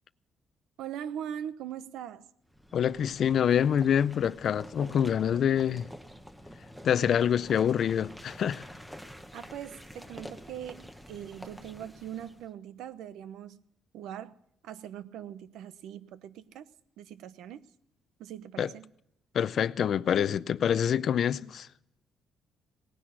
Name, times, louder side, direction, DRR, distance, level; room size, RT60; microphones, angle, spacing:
voice 1, 0.8-2.3 9.3-13.6 13.9-14.3 14.6-16.7 17.0-17.7 18.2-18.9, right 10 dB, 90° right, 0.8 m, -41 dB
sound 1, 2.5-12.5, equal, ahead, 0.9 m, -47 dB
voice 2, 2.7-5.9 6.8-8.6 18.6-18.7 19.3-21.7, left 9 dB, 50° left, 0.5 m, -26 dB
19.0 x 10.0 x 6.3 m
cardioid pair, 150°, 0 cm